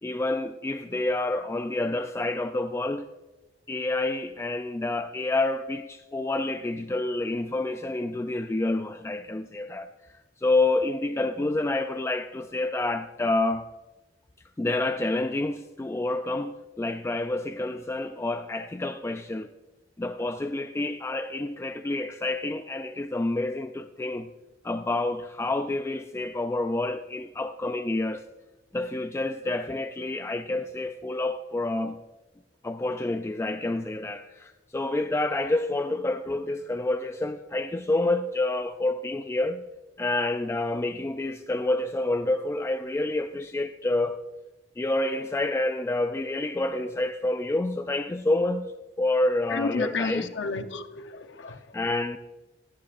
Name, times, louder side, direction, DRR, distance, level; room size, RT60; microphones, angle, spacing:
voice 1, 0.0-3.1 3.7-13.7 14.6-19.5 20.0-24.3 24.6-28.3 28.7-32.0 32.6-39.6 40.0-44.2 44.8-48.7 49.0-50.3 51.5-52.2, left 2 dB, 15° left, 0.3 m, -28 dB
voice 2, 49.5-51.6, left 3 dB, 70° left, 0.8 m, -31 dB
17.5 x 13.5 x 2.5 m
head